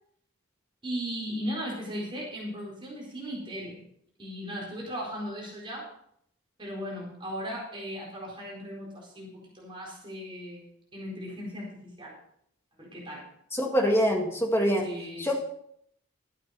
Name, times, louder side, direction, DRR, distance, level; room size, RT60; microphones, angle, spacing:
voice 1, 0.8-3.8 4.2-5.9 6.6-12.1 12.8-13.3 14.8-15.4, equal, 20° right, -4 dB, 4.4 m, -37 dB
voice 2, 13.5-14.9 15.2-15.4, equal, 10° left, 1 dB, 2.0 m, -24 dB
13.0 x 8.8 x 5.2 m, 0.70 s
head